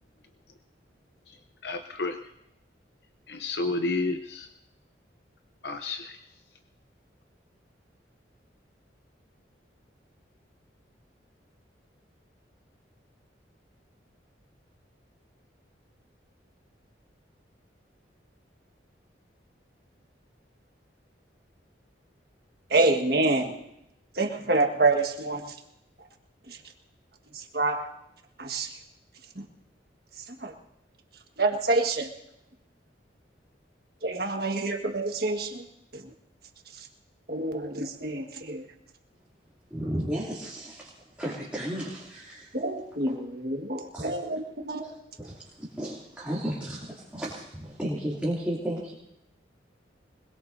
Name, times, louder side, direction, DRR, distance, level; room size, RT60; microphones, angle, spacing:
voice 1, 1.6-2.2 3.3-4.5 5.6-6.2, left 3 dB, 65° left, 6 dB, 0.7 m, -30 dB
voice 2, 22.7-23.5 24.1-25.5 26.5-26.6 27.3-27.9 28.4-28.7 29.3-29.4 30.3-30.5 31.4-32.1 34.0-35.6 35.9-36.1 36.8-36.9 37.3-38.6 42.5-44.8, right 2 dB, 55° right, 3 dB, 1.6 m, -27 dB
voice 3, 39.7-40.9 41.2-42.6 43.1-43.2 43.9-44.2 44.8-48.9, equal, 5° right, -7 dB, 2.7 m, -34 dB
24.5 x 21.5 x 2.7 m, 0.80 s
head